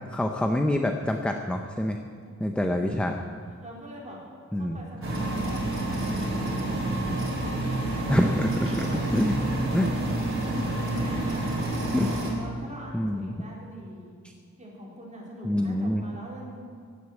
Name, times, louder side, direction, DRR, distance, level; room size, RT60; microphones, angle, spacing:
voice 1, 0.1-2.0 2.4-3.2 4.5-4.8 8.1-9.3 9.7-9.9 10.6-10.8 11.9-12.1 12.9-13.4 15.4-16.0, left 1 dB, 5° left, 4 dB, 0.6 m, -26 dB
voice 2, 2.2-2.7 3.2-4.2 4.5-6.9 8.9-10.1 10.7-14.1 14.6-16.6, equal, 25° right, -5 dB, 4.2 m, -44 dB
sound 1, 5.0-12.3, right 1 dB, 45° right, 3.4 m, -28 dB
16.0 x 9.9 x 8.1 m, 2.1 s
wide cardioid pair, 165°, 30 cm